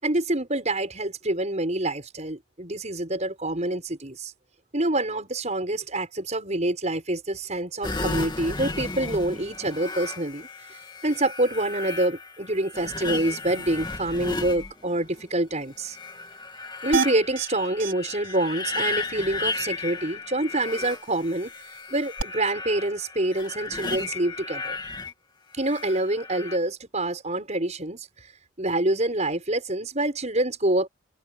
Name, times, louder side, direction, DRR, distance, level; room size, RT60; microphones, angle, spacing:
voice 1, 0.0-4.3 4.7-16.0 16.8-21.5 21.9-24.8 25.5-28.1 28.6-30.9, right 1 dB, 35° right, 6.2 m, -26 dB
sound 1, 7.8-15.2 15.8-25.1 25.6-26.6, left 3 dB, 20° left, 2.5 m, -34 dB
sound 2, 16.9-17.5 17.8-17.9 18.2-18.4 18.7-18.8 22.2-22.3, right 5 dB, 65° right, 5.2 m, -27 dB
open air
head